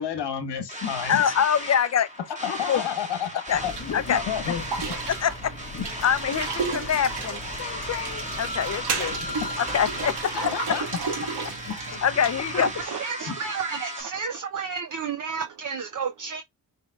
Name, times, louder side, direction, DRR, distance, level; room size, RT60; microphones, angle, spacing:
voice 1, 0.0-1.2 2.4-4.6 5.7-5.8 9.1-9.6 10.3-10.8 11.7-11.9 12.5-12.6 13.3-13.4, left 8 dB, 85° left, 1.3 m, -31 dB
sound 1, 0.7-14.0, equal, 20° right, 1.7 m, -36 dB
voice 2, 1.1-2.1 2.7-2.8 3.5-3.6 3.9-4.2 4.5-4.6 5.1-5.5 6.0-10.2 10.4-10.8 12.0-12.7, left 8 dB, 40° left, 0.6 m, -25 dB
sound 2, 3.5-10.2, left 5 dB, 20° left, 0.9 m, -43 dB
sound 3, 3.6-12.8, right 5 dB, 75° right, 1.5 m, -34 dB
voice 3, 12.5-16.4, right 6 dB, 50° right, 0.7 m, -31 dB
5.1 x 3.6 x 2.3 m
cardioid pair, 85°, 40 cm